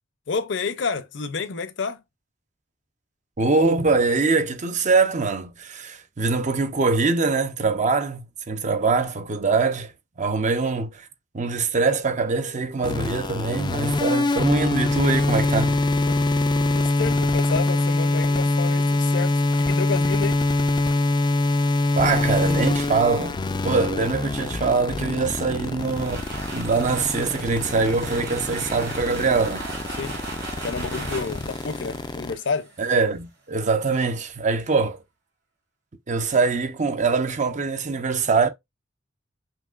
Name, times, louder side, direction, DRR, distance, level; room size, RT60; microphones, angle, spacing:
voice 1, 0.3-2.0 16.0-16.2 16.7-20.4 30.0-30.3 30.6-32.7, left 4 dB, 65° left, 0.6 m, -30 dB
voice 2, 3.4-9.9 10.2-11.1 11.3-15.8 21.9-29.7 32.8-35.0 36.1-38.5, right 4 dB, 40° right, 0.6 m, -23 dB
sound 1, 12.8-32.3, left 2 dB, 25° left, 0.3 m, -24 dB
sound 2, 25.5-33.0, right 3 dB, 65° right, 2.6 m, -37 dB
5.7 x 2.8 x 2.4 m
head